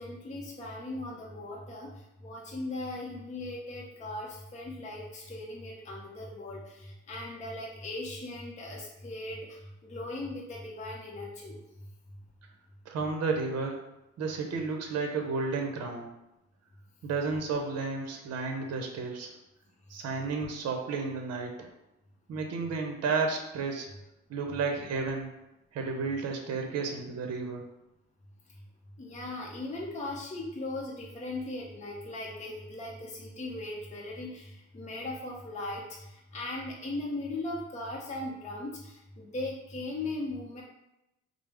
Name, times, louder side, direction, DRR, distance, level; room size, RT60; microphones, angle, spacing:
voice 1, 0.0-1.9 2.2-9.5 9.8-11.6 29.0-40.6, left 2 dB, 25° left, -3 dB, 0.6 m, -38 dB
voice 2, 12.9-13.8 14.2-16.1 17.0-19.3 19.9-21.7 22.3-23.9 24.3-25.3 25.7-27.7, right 4 dB, 60° right, 3 dB, 0.7 m, -32 dB
4.7 x 2.0 x 3.4 m, 0.91 s
cardioid pair, 90°, 30 cm